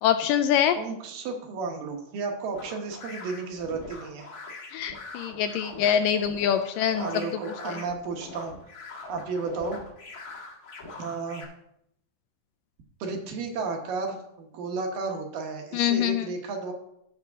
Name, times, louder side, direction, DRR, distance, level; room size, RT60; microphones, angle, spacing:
voice 1, 0.0-0.8 4.7-7.2 7.7-7.8 15.7-16.3, left 9 dB, 80° left, 9 dB, 2.0 m, -24 dB
voice 2, 0.8-4.3 7.0-8.5 9.1-9.8 11.0-11.5 13.0-16.7, right 4 dB, 75° right, 3 dB, 2.8 m, -33 dB
sound 1, 2.5-11.4, left 3 dB, 40° left, 1.5 m, -43 dB
15.5 x 5.7 x 3.6 m, 0.77 s
omnidirectional pair, 4.2 m